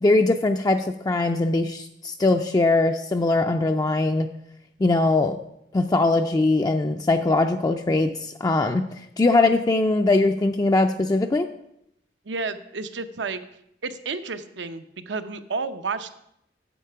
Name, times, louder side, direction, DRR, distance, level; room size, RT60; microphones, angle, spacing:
voice 1, 0.0-4.3 4.8-5.4 5.7-8.8 9.2-11.5, left 2 dB, 20° left, 5 dB, 0.4 m, -21 dB
voice 2, 12.3-13.4 13.8-16.1, right 4 dB, 80° right, 10 dB, 0.7 m, -31 dB
8.3 x 7.5 x 5.6 m, 0.78 s
head